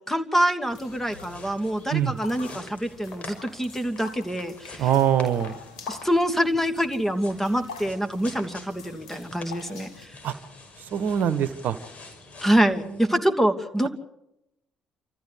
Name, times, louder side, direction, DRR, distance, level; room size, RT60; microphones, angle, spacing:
voice 1, 0.1-4.9 5.9-10.2 12.4-13.9, equal, 10° left, 8 dB, 2.8 m, -25 dB
sound 1, 0.7-10.1, left 5 dB, 90° left, 2.3 m, -45 dB
sound 2, 0.7-13.1, left 3 dB, 45° left, 6.0 m, -46 dB
voice 2, 4.8-5.5 10.2-10.3 10.9-11.8, right 9 dB, 60° right, 13 dB, 1.2 m, -23 dB
28.0 x 14.5 x 8.5 m, 0.85 s
hypercardioid pair, 50°, 3 cm